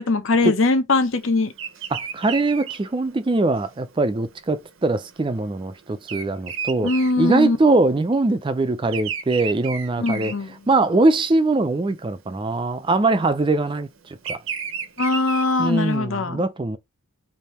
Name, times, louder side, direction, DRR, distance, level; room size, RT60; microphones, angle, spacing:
voice 1, 0.0-1.5 6.8-7.6 10.0-10.5 15.0-16.4, left 3 dB, 60° left, 0.7 m, -21 dB
Bird vocalization bird call bird song, 1.5-11.1 11.6-11.9 12.9-15.9, right 7 dB, 60° right, 0.7 m, -33 dB
voice 2, 1.9-6.9 7.2-10.3 10.7-14.4 15.6-16.8, right 2 dB, 20° right, 0.3 m, -22 dB
3.4 x 2.7 x 4.2 m
head